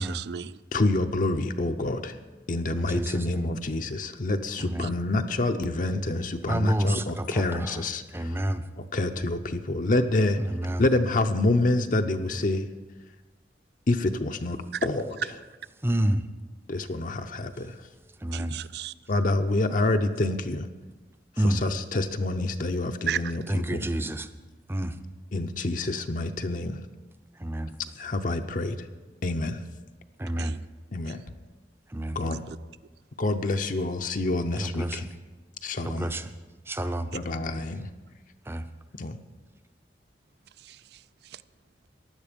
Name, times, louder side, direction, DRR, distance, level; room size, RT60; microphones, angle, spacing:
voice 1, 0.0-0.6 4.6-4.9 14.7-14.9 18.3-18.9 23.1-23.4 30.4-30.7 31.1-31.2 32.3-32.6 40.6-41.4, right 9 dB, 65° right, 17 dB, 0.4 m, -36 dB
voice 2, 0.7-2.1 2.5-8.4 8.8-10.4 10.8-12.7 13.9-15.2 16.7-17.8 19.1-20.7 21.4-23.4 23.7-23.9 25.3-26.8 28.0-28.9 29.2-29.6 30.9-31.2 32.1-32.4 33.2-35.1 35.6-36.1 37.1-37.9 39.0-39.2, left 2 dB, 50° left, 6 dB, 0.6 m, -27 dB
voice 3, 2.7-3.5 4.6-4.9 6.5-7.7 8.1-8.6 10.5-10.8 15.8-16.2 18.2-18.6 21.4-21.6 23.5-24.3 24.7-24.9 27.4-27.7 30.2-30.6 31.9-32.2 34.6-35.1 35.8-36.2 36.7-37.1 38.5-38.6, right 1 dB, 15° right, 10 dB, 0.6 m, -28 dB
15.5 x 11.0 x 5.2 m, 1.3 s
head